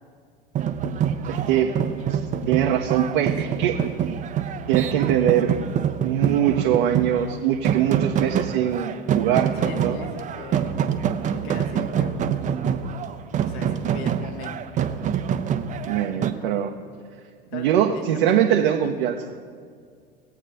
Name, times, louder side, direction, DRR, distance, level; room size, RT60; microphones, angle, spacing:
sound 1, 0.5-16.3, right 8 dB, 25° right, 0.6 m, -26 dB
voice 1, 1.2-1.7 2.1-2.2 2.5-3.8 4.7-5.5 6.0-10.0 15.8-16.7 17.5-19.2, right 10 dB, 55° right, 2 dB, 0.8 m, -22 dB
voice 2, 9.6-10.8 11.3-12.5 13.3-14.7 17.5-19.4, left 5 dB, 45° left, 5 dB, 1.5 m, -40 dB
19.0 x 8.3 x 3.4 m, 2.1 s
figure-of-eight pair, 80°, 30 cm